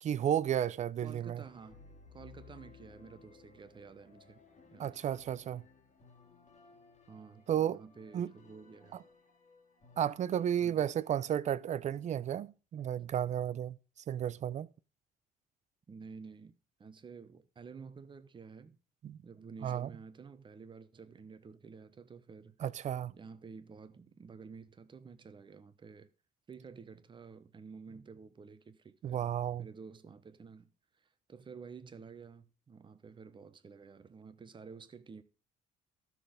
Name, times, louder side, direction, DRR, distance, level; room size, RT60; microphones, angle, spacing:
voice 1, 0.0-1.4 4.8-5.6 7.5-7.8 8.1-8.3 10.0-13.8 14.1-14.7 19.0-19.2 19.6-19.9 22.6-23.1 29.0-29.7, right 10 dB, 45° right, 0.5 m, -33 dB
voice 2, 1.0-1.8 2.1-4.4 4.7-5.0 7.1-9.0 10.6-10.9 13.0-13.1 15.9-16.5 16.8-18.8 19.2-22.6 23.1-26.1 26.5-29.3 29.6-30.7 31.0-35.2, right 5 dB, 30° right, 0.9 m, -51 dB
sound 1, 1.4-11.2, left 5 dB, 45° left, 1.9 m, -60 dB
12.5 x 6.2 x 5.1 m
cardioid pair, 110°, 17 cm